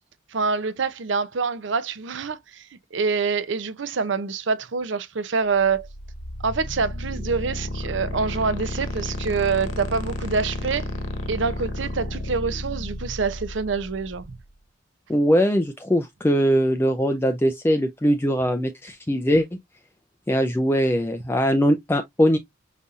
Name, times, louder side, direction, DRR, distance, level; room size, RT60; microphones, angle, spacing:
voice 1, 0.3-2.7 2.9-5.9 6.4-10.9 11.3-14.2, right 5 dB, 60° right, 0.6 m, -26 dB
sound 1, 5.6-14.4, left 1 dB, 70° left, 1.1 m, -32 dB
voice 2, 15.1-19.5 20.3-22.4, equal, 10° left, 0.4 m, -21 dB
5.4 x 4.0 x 2.4 m
head